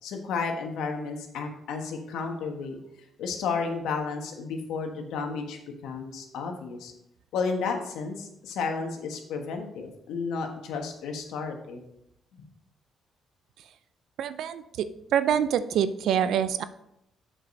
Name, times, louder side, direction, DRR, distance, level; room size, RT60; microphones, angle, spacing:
voice 1, 0.0-2.8 3.2-6.9 7.3-11.8, left 4 dB, 85° left, 4 dB, 1.3 m, -32 dB
voice 2, 14.2-14.9 15.1-16.6, right 9 dB, 75° right, 13 dB, 0.5 m, -25 dB
8.0 x 4.9 x 5.3 m, 0.81 s
cardioid pair, 90°, 0 cm